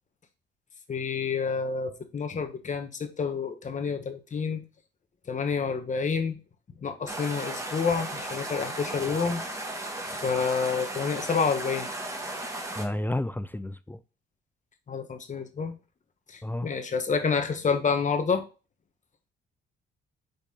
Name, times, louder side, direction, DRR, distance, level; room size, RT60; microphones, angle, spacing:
voice 1, 0.9-4.6 5.3-6.4 6.8-9.4 10.2-11.9 14.9-15.8 16.3-18.4, left 5 dB, 40° left, 1.3 m, -28 dB
sound 1, 7.1-12.8, right 1 dB, 15° right, 1.8 m, -35 dB
voice 2, 12.7-14.0 16.4-16.7, left 1 dB, 10° left, 0.4 m, -31 dB
5.5 x 4.1 x 5.4 m
cardioid pair, 90°, 20 cm